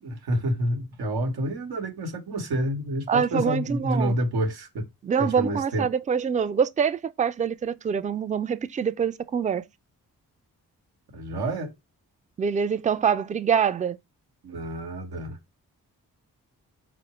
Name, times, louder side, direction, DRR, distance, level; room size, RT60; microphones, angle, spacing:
voice 1, 0.0-4.9 5.2-5.9 11.1-11.7 14.4-15.4, right 1 dB, 90° right, 1.1 m, -28 dB
voice 2, 3.1-4.1 5.0-9.6 12.4-14.0, right 7 dB, 20° right, 0.3 m, -25 dB
4.7 x 2.1 x 2.9 m
supercardioid pair, 45°, 37 cm